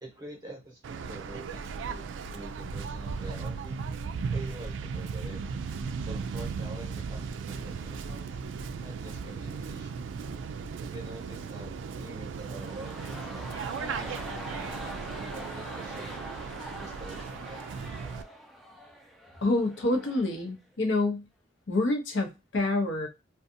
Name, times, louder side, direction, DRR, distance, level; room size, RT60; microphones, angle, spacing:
voice 1, 0.0-3.8 4.3-5.6 6.1-8.4 8.8-10.1 10.8-13.3 13.7-16.1 16.8-17.6, right 1 dB, 20° right, -2 dB, 1.1 m, -46 dB
Waves surf, 0.8-18.2, right 5 dB, 85° right, 0.3 m, -36 dB
sound 1, 12.4-20.5 20.7-20.8, equal, ahead, 0.4 m, -44 dB
voice 2, 19.4-21.3 21.7-23.1, left 2 dB, 90° left, 2 dB, 0.8 m, -27 dB
2.6 x 2.3 x 2.6 m, 0.24 s
head